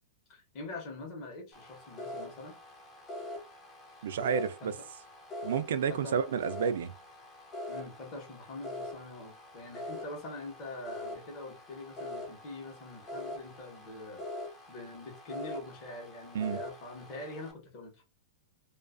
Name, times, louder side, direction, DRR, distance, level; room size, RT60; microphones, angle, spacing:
voice 1, 0.3-2.6 4.6-4.9 5.9-6.2 7.7-18.0, left 2 dB, 30° left, 0.9 m, -44 dB
sound 1, 1.5-17.5, left 1 dB, 15° left, 0.5 m, -44 dB
voice 2, 4.0-4.7 5.4-6.9 16.3-16.6, right 7 dB, 75° right, 0.3 m, -30 dB
2.4 x 2.3 x 2.4 m
supercardioid pair, 165°, 0 cm